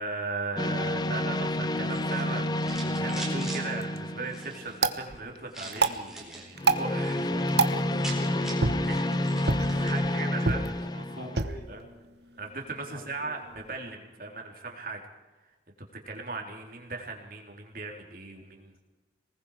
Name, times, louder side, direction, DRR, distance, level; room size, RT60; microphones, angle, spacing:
voice 1, 0.0-7.9 8.9-10.6 11.1-11.3 11.7-11.8 12.4-15.0 16.1-18.8, right 3 dB, 50° right, 2 dB, 3.6 m, -38 dB
sound 1, 0.6-5.0 6.6-11.4, left 1 dB, 25° left, 0.7 m, -29 dB
sound 2, 1.8-3.6 4.2-4.8 5.5-6.5 6.9-7.3 7.5-7.6 7.8-10.0, right 2 dB, 5° right, 4.3 m, -42 dB
sound 3, 3.6-13.7, right 3 dB, 70° right, 1.2 m, -32 dB
voice 2, 7.8-8.8 9.7-12.0 12.9-13.5, equal, 55° left, 1 dB, 4.4 m, -47 dB
27.0 x 20.0 x 5.0 m, 1.1 s
head